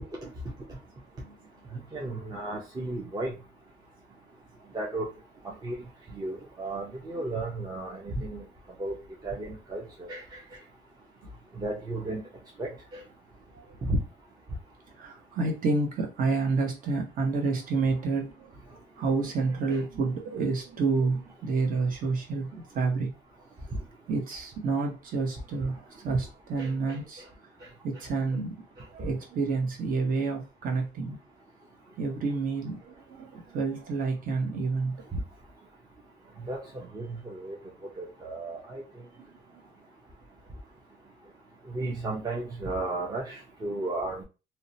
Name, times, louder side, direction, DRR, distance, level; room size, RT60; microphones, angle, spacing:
voice 1, 1.7-3.3 4.7-5.1 5.6-5.8 6.1-8.5 8.8-9.0 9.2-10.6 11.6-12.2 12.6-13.0 13.8-14.0 19.7-19.8 26.6-26.7 35.1-35.2 36.5-37.6 38.0-38.8 41.7-44.2, right 2 dB, 25° right, 0.6 m, -34 dB
voice 2, 15.0-18.5 19.0-22.5 22.7-23.1 24.1-27.2 27.8-28.6 28.9-31.2 32.0-35.0, right 4 dB, 55° right, 0.9 m, -29 dB
2.7 x 2.1 x 2.6 m
cardioid pair, 110°, 17 cm